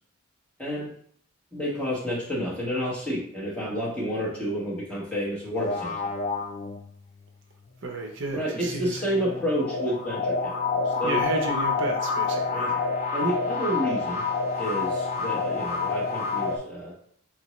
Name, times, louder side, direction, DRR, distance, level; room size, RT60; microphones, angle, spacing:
voice 1, 0.6-0.9 1.5-5.9 8.3-11.2 12.5-12.8 13.1-14.3 14.6-17.0, equal, 5° left, -7 dB, 1.1 m, -30 dB
sound 1, 5.5-7.2 8.5-16.6, left 4 dB, 30° left, 0.3 m, -28 dB
voice 2, 7.8-9.0 10.9-12.8, right 2 dB, 55° right, 2 dB, 0.6 m, -33 dB
4.4 x 2.7 x 3.0 m, 0.62 s
head